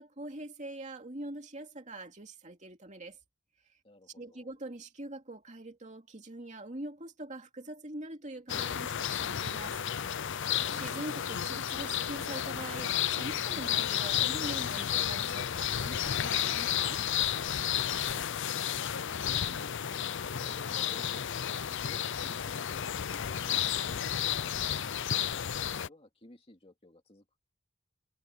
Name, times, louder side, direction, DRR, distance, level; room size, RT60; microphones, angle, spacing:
voice 1, 0.0-3.2 4.2-9.8 10.1-10.3 10.6-17.0, right 1 dB, 35° right, 2.6 m, -43 dB
voice 2, 3.8-4.6 18.1-21.5 21.8-27.4, left 1 dB, 25° left, 2.6 m, -56 dB
sound 1, 8.5-25.9, left 9 dB, 60° left, 0.6 m, -32 dB
head